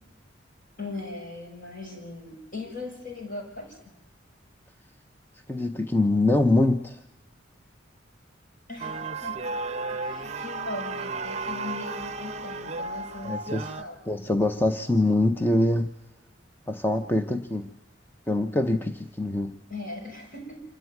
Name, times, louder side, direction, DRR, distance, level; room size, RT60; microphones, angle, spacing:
voice 1, 0.8-3.8 8.7-9.5 9.9-14.0 19.7-20.6, left 2 dB, 45° left, 1 dB, 7.5 m, -39 dB
voice 2, 5.5-7.0 13.2-13.7 14.1-15.9 16.7-17.8 18.3-19.6, left 2 dB, 10° left, 7 dB, 0.7 m, -24 dB
sound 1, 8.8-13.8, right 3 dB, 35° right, 0.7 m, -33 dB
27.0 x 14.5 x 9.4 m, 0.99 s
head